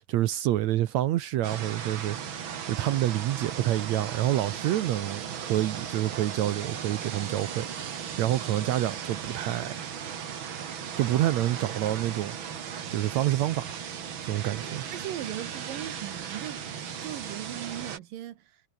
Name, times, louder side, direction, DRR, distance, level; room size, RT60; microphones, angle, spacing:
voice 1, 0.0-7.7 8.2-9.8 11.0-12.4 12.9-13.8 14.2-14.9, right 13 dB, 70° right, 1.8 m, -28 dB
sound 1, 1.4-18.0, right 8 dB, 45° right, 2.0 m, -37 dB
voice 2, 14.9-16.6 17.0-18.6, right 13 dB, 85° right, 3.0 m, -38 dB
omnidirectional pair, 3.9 m